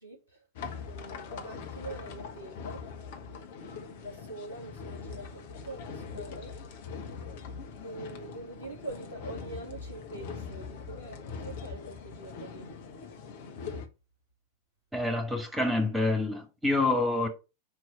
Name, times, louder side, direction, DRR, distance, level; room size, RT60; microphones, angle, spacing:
sound 1, 0.6-13.9, left 5 dB, 55° left, 1.3 m, -42 dB
voice 1, 0.9-2.8 4.0-6.5 7.8-12.7, right 2 dB, 85° left, 2.6 m, -44 dB
voice 2, 14.9-17.3, left 2 dB, 5° right, 2.2 m, -27 dB
5.8 x 4.7 x 5.6 m
figure-of-eight pair, 90°, 0 cm